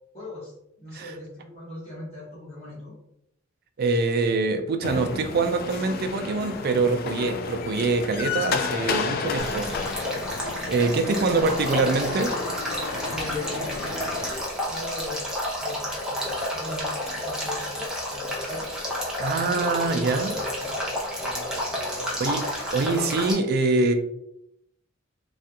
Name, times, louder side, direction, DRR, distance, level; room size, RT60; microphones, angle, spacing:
voice 1, 0.1-3.0 11.2-11.5 13.0-15.2 15.6-18.7 19.4-23.0, left 2 dB, 30° left, -9 dB, 1.2 m, -40 dB
voice 2, 3.8-9.7 10.7-12.3 19.2-20.3 22.2-22.4 22.7-23.9, right 3 dB, 50° right, 6 dB, 0.4 m, -24 dB
sound 1, 4.8-14.3, left 5 dB, 50° left, 0.3 m, -32 dB
Male speech man speaking / Stream / Trickle dribble, 9.4-23.3, equal, 5° right, 0.7 m, -30 dB
3.3 x 2.4 x 2.8 m, 0.79 s
head